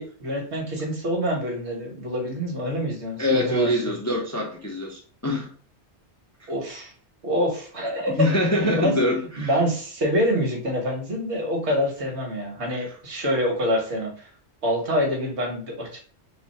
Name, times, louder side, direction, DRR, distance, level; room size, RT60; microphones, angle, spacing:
voice 1, 0.0-4.0 6.5-6.9 7.2-8.1 8.6-9.0 9.4-14.3 14.6-16.1, equal, 80° right, 1.6 m, -26 dB
voice 2, 3.2-5.5 8.1-9.6 12.7-12.9, left 1 dB, 25° left, 0.4 m, -24 dB
4.0 x 2.0 x 4.1 m
omnidirectional pair, 1.1 m